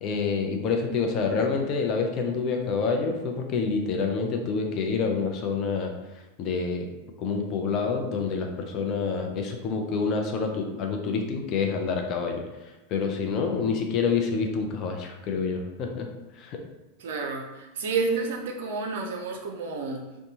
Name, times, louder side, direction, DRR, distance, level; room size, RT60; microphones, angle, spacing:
voice 1, 0.0-5.9 6.4-6.9 7.2-16.1 16.3-16.6, left 5 dB, 45° left, 3 dB, 0.5 m, -27 dB
voice 2, 17.0-20.0, right 4 dB, 70° right, 2 dB, 0.5 m, -30 dB
2.7 x 2.2 x 2.8 m, 1.0 s
hypercardioid pair, 95°, 0 cm